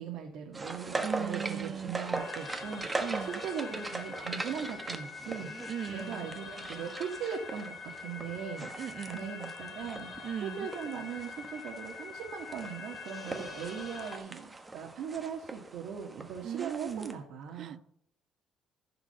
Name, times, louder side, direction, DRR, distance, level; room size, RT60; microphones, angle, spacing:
voice 1, 0.0-5.5 5.9-8.7 9.1-17.8, right 7 dB, 70° right, 1.6 m, -39 dB
sound 1, 0.5-17.1, right 2 dB, 15° right, 1.1 m, -41 dB
voice 2, 1.0-2.0 3.0-3.4 5.7-6.3 8.8-9.2 10.2-10.7 16.4-17.1 17.6-17.8, right 8 dB, 45° right, 0.4 m, -38 dB
sound 2, 2.1-14.2, left 5 dB, 40° left, 3.3 m, -45 dB
14.5 x 4.9 x 6.8 m
cardioid pair, 160°, 0 cm